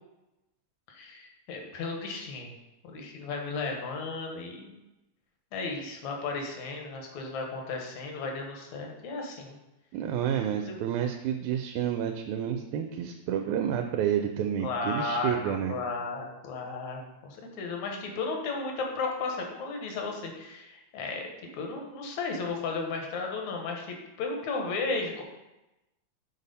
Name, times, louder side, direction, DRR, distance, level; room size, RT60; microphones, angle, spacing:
voice 1, 0.9-2.6 2.8-4.8 5.5-9.5 10.7-10.8 14.6-21.3 21.5-25.2, left 3 dB, 75° left, 1 dB, 2.4 m, -34 dB
voice 2, 9.9-15.7, right 9 dB, 85° right, 5 dB, 2.0 m, -30 dB
6.6 x 4.1 x 5.3 m, 0.99 s
omnidirectional pair, 3.4 m